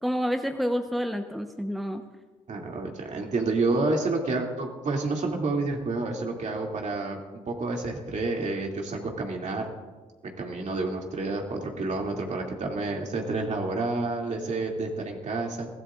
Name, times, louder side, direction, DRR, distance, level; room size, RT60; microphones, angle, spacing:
voice 1, 0.0-2.0, equal, ahead, 6 dB, 1.0 m, -28 dB
voice 2, 2.5-7.2 7.5-9.7 10.4-15.7, right 3 dB, 55° right, 1 dB, 2.7 m, -29 dB
22.0 x 15.5 x 2.5 m, 1.3 s
hypercardioid pair, 50°, 15 cm